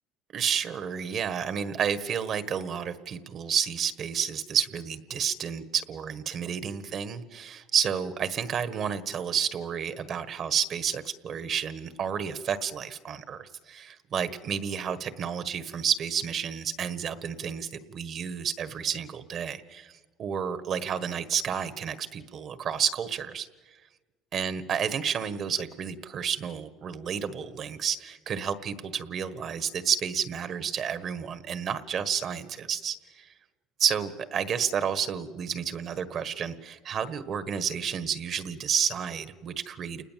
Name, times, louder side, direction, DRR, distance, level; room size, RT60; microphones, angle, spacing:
voice 1, 0.3-23.5 24.3-33.3 33.8-40.0, right 7 dB, 45° right, 12 dB, 1.5 m, -30 dB
29.5 x 20.0 x 7.5 m, 1.3 s
cardioid pair, 125°, 0 cm